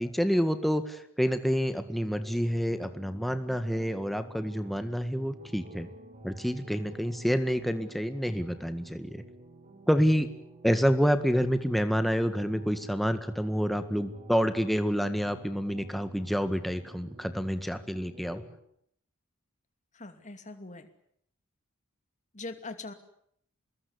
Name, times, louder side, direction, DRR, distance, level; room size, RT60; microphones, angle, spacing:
voice 1, 0.0-5.9 6.2-9.2 9.9-10.3 10.6-18.4, equal, ahead, 9 dB, 1.9 m, -28 dB
sound 1, 1.4-18.6, right 2 dB, 40° right, 4.8 m, -51 dB
voice 2, 19.9-20.9 22.3-22.9, left 3 dB, 35° left, 8 dB, 2.7 m, -41 dB
26.5 x 21.0 x 9.8 m, 0.70 s
head